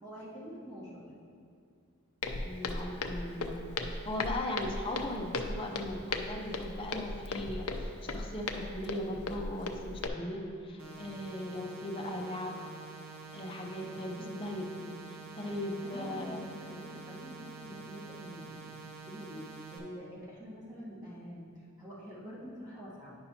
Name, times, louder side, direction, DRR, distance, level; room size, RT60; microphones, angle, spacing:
voice 1, 0.0-1.1 15.4-15.6 15.8-18.7 19.1-23.2, equal, 20° right, -9 dB, 1.4 m, -46 dB
Walk footsteps, 2.2-10.1, left 3 dB, 90° left, 0.5 m, -37 dB
voice 2, 2.4-12.6 13.3-16.5, left 1 dB, 25° left, 0 dB, 0.6 m, -38 dB
sound 1, 10.8-19.8, right 4 dB, 65° right, 1.0 m, -48 dB
9.6 x 5.4 x 2.8 m, 2.3 s
head